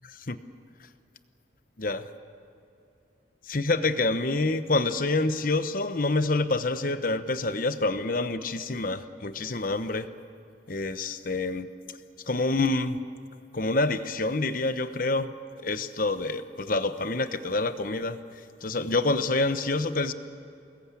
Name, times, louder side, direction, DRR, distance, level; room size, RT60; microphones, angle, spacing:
voice 1, 1.8-2.1 3.5-10.1 10.7-11.7 12.3-13.0 13.5-15.3 15.6-18.2 18.6-20.1, left 2 dB, 45° left, 11 dB, 1.0 m, -27 dB
25.0 x 21.0 x 8.5 m, 2.6 s
head